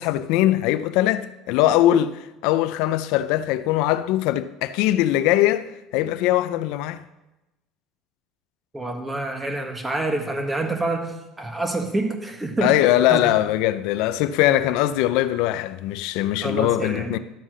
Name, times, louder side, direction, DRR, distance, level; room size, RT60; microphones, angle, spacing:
voice 1, 0.0-7.0 12.6-17.2, left 13 dB, 75° left, 0.5 m, -21 dB
voice 2, 8.7-12.8 13.1-13.3 16.4-17.1, right 2 dB, 15° right, 1.4 m, -27 dB
11.5 x 7.4 x 6.2 m
cardioid pair, 140°, 0 cm